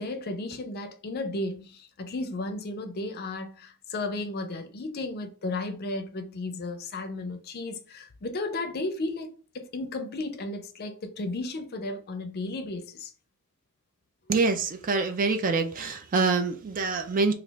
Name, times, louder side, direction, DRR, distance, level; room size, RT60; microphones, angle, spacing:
voice 1, 0.0-13.1, left 2 dB, 45° left, 0.5 m, -34 dB
voice 2, 14.3-17.3, right 4 dB, 40° right, 0.4 m, -25 dB
3.1 x 2.4 x 3.4 m
head